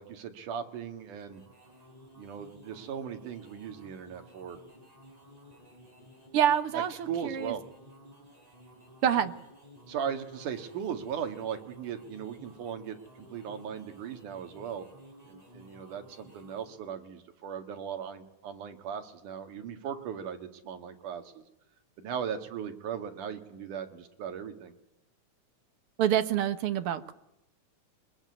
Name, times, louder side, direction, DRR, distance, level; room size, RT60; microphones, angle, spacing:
voice 1, 0.0-1.4 2.2-4.6 6.7-7.6 9.9-14.9 15.3-21.4 22.0-24.7, right 8 dB, 75° right, 6 dB, 3.4 m, -38 dB
sound 1, 1.0-16.8, equal, 10° right, 4.0 m, -55 dB
voice 2, 6.3-7.5 9.0-9.3 26.0-27.1, right 9 dB, 60° right, 10 dB, 1.7 m, -27 dB
24.0 x 20.5 x 9.7 m, 0.86 s
omnidirectional pair, 3.6 m